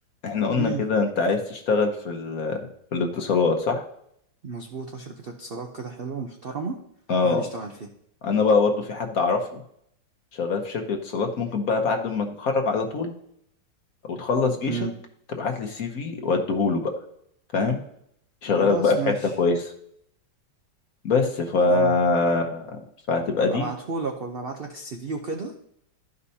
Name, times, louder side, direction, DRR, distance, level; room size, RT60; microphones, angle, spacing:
voice 1, 0.2-2.6 2.9-3.8 7.1-7.4 8.2-9.6 10.3-13.1 14.0-14.8 15.4-16.9 17.5-17.8 18.4-19.7 21.0-22.7 23.1-23.7, left 4 dB, 55° left, 3 dB, 1.2 m, -23 dB
voice 2, 4.4-6.8 7.2-7.9 14.7-14.9 18.5-19.3 21.6-21.9 23.4-25.5, right 4 dB, 60° right, 3 dB, 0.6 m, -32 dB
12.5 x 5.3 x 2.8 m, 0.71 s
omnidirectional pair, 1.9 m